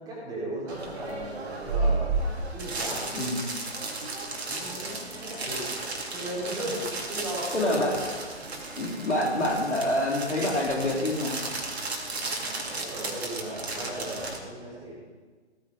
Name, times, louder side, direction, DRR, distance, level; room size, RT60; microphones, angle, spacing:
voice 1, 0.0-3.1 4.5-5.6 6.1-6.8 7.1-7.9 12.7-14.9, right 1 dB, 10° right, -6 dB, 4.3 m, -36 dB
sound 1, 0.7-14.4, right 3 dB, 60° right, 2.8 m, -33 dB
voice 2, 3.1-3.5 7.5-8.0 8.8-11.4, left 1 dB, 80° left, -1 dB, 3.3 m, -27 dB
16.5 x 10.0 x 5.1 m, 1.4 s
figure-of-eight pair, 135°, 35 cm